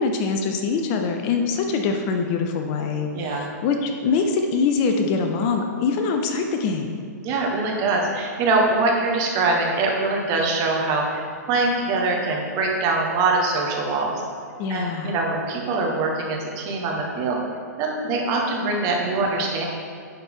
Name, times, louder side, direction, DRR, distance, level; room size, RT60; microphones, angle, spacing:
voice 1, 0.0-7.0 14.6-15.2, left 4 dB, 35° left, 4 dB, 0.7 m, -24 dB
voice 2, 7.2-14.1 14.7-17.4 17.8-19.6, right 3 dB, 35° right, 0 dB, 1.4 m, -23 dB
10.5 x 4.4 x 3.8 m, 2.3 s
hypercardioid pair, 120°, 9 cm